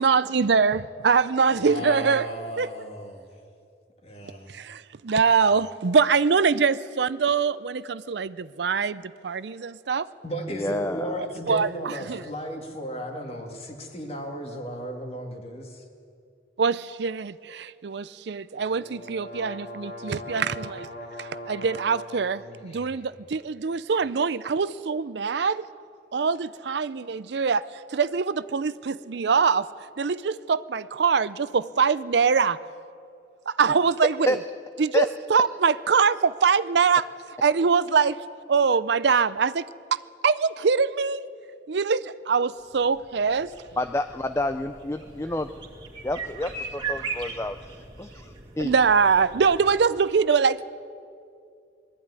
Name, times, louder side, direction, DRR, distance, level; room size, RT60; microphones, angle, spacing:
voice 1, 0.0-2.3 2.6-2.7 4.2-10.1 11.2-12.2 16.6-20.9 21.2-25.7 26.1-29.7 30.0-32.6 33.5-34.4 34.8-37.1 37.4-39.7 39.9-41.3 41.7-43.5 48.6-50.8, right 5 dB, 65° right, 16 dB, 0.5 m, -23 dB
voice 2, 1.5-3.2 4.0-4.5 10.2-15.8 22.3-23.1, equal, 30° left, 3 dB, 2.2 m, -35 dB
voice 3, 10.5-11.2 34.3-34.4 34.9-35.1 43.8-45.5 46.0-47.6 48.0-48.7, left 1 dB, 15° left, 9 dB, 0.4 m, -29 dB
sound 1, 18.6-22.5, left 1 dB, 55° left, 3.0 m, -40 dB
sound 2, 42.6-49.8, right 4 dB, 25° right, 2.3 m, -39 dB
21.0 x 13.5 x 9.6 m, 2.4 s
head